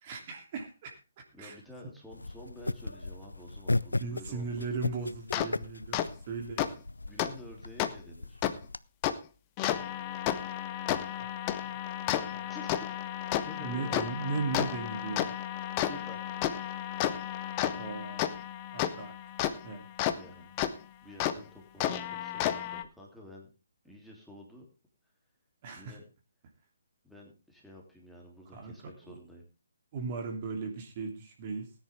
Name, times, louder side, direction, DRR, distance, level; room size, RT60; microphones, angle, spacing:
voice 1, 0.0-1.0 1.4-1.6 4.0-6.0 6.3-6.8 11.2-11.3 11.6-11.7 12.3-12.4 13.6-15.3 17.8-18.3 18.7-19.1 19.6-19.8 25.6-26.0 28.5-28.7 29.0-29.2 29.9-31.7, right 4 dB, 35° right, 3 dB, 3.0 m, -37 dB
voice 2, 1.3-4.6 7.0-8.4 12.5-13.0 13.4-14.1 15.8-16.6 20.2-20.6 21.0-23.5 23.8-24.7 25.7-26.0 27.0-29.4, left 1 dB, ahead, -3 dB, 3.1 m, -50 dB
sound 1, 2.1-8.8, left 2 dB, 75° left, 0.6 m, -37 dB
sound 2, 5.3-5.5 5.9-6.0 6.6-6.7 7.2-7.3 7.8-7.9 8.4-8.5 9.0-9.1 9.6-20.1 20.6-20.7 21.2-21.3 21.8-22.8, left 11 dB, 25° left, 1.0 m, -32 dB
18.5 x 10.0 x 3.5 m, 0.30 s
figure-of-eight pair, 135°, 0 cm